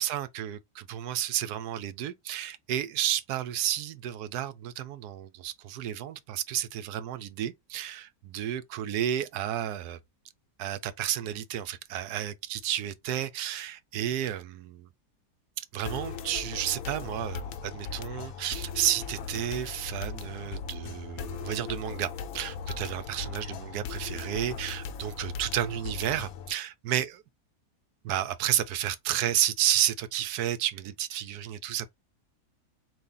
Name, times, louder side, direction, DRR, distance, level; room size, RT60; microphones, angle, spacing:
voice 1, 0.0-10.0 10.6-14.9 15.6-27.2 28.0-31.9, right 11 dB, 80° right, 1.1 m, -31 dB
sound 1, 15.9-26.5, left 6 dB, 65° left, 1.0 m, -38 dB
4.2 x 2.8 x 3.8 m
omnidirectional pair, 1.7 m